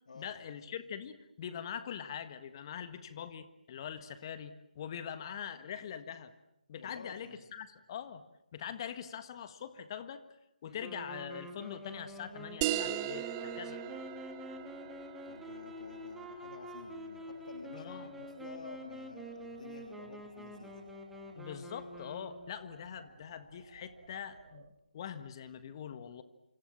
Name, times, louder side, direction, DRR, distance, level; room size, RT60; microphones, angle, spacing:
voice 1, 0.1-6.3 6.7-8.2 8.5-10.3 10.6-13.8 17.7-18.1 21.4-26.2, left 8 dB, 30° left, 12 dB, 1.6 m, -43 dB
voice 2, 6.7-7.4 10.6-10.8 15.2-20.8, left 3 dB, 60° left, 4 dB, 3.2 m, -51 dB
sound 1, 10.8-22.6, equal, 5° right, 2.6 m, -47 dB
sound 2, 11.9-24.7, right 4 dB, 55° right, 3.7 m, -59 dB
sound 3, 12.6-17.7, right 13 dB, 20° right, 1.1 m, -39 dB
27.5 x 26.5 x 7.4 m, 0.87 s
figure-of-eight pair, 150°, 5 cm